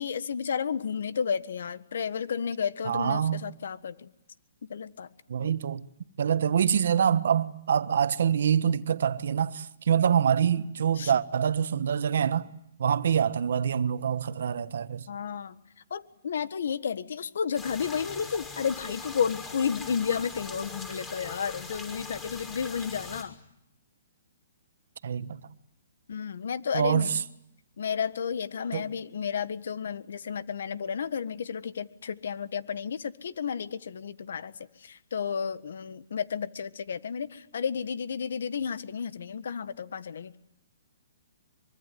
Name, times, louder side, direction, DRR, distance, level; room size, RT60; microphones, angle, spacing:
voice 1, 0.0-4.1 4.7-5.1 5.4-5.5 11.0-11.1 15.1-15.5 15.9-23.3 26.1-27.2 27.8-34.5 34.8-40.3, left 7 dB, 70° left, 1.5 m, -32 dB
voice 2, 2.9-3.4 5.3-5.9 6.2-12.5 12.8-15.1 25.0-25.4 26.7-27.2 28.7-28.9, right 8 dB, 70° right, 1.4 m, -25 dB
sound 1, 17.5-23.2, left 4 dB, 15° left, 5.9 m, -41 dB
24.5 x 24.0 x 9.5 m
hypercardioid pair, 150°, 0 cm